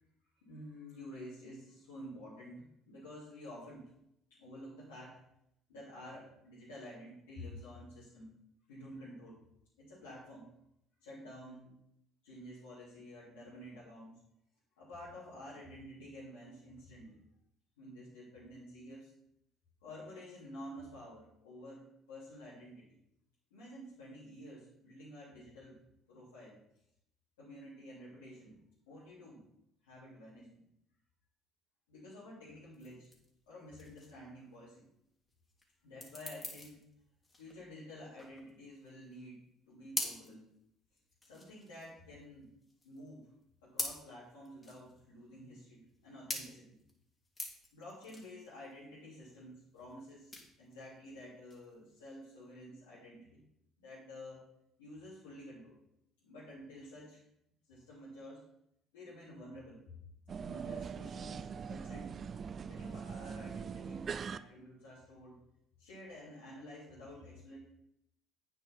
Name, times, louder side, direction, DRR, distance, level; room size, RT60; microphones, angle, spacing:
voice 1, 0.4-3.9 4.3-5.2 5.7-8.3 8.7-9.4 9.8-10.5 11.0-11.8 12.2-14.2 14.8-17.2 17.8-19.1 19.8-23.0 23.5-25.8 26.1-26.6 27.4-28.6 28.9-29.5 29.8-30.6 31.9-33.1 33.5-34.9 35.8-36.9 37.4-39.4 39.7-40.4 41.2-42.5 42.8-43.3 43.6-46.8 47.7-53.4 53.8-54.5 54.8-55.8 56.2-57.2 57.7-58.4 58.9-60.0 60.4-62.2 62.7-65.4 65.8-67.6, left 1 dB, 85° left, -10 dB, 3.1 m, -50 dB
sound 1, 32.7-52.5, left 2 dB, 25° left, 2.8 m, -46 dB
sound 2, 60.3-64.4, right 6 dB, 45° right, 0.4 m, -42 dB
9.0 x 5.9 x 5.6 m, 0.77 s
hypercardioid pair, 55°, 0 cm